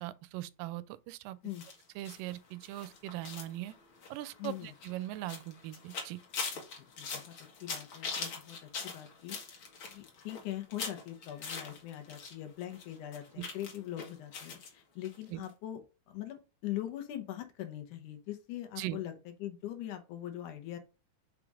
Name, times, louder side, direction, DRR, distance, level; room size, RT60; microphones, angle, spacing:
voice 1, 0.0-1.4 2.0-3.7 4.1-6.2 13.4-13.5 15.3-15.4 18.8-19.0, right 15 dB, 85° right, 2.2 m, -40 dB
sound 1, 1.5-12.3 12.6-14.7 15.0-15.2 15.4-15.5, left 5 dB, 50° left, 1.7 m, -42 dB
voice 2, 4.4-4.7 6.8-15.8 16.1-20.8, left 13 dB, 70° left, 2.3 m, -42 dB
5.4 x 4.9 x 4.8 m
omnidirectional pair, 3.9 m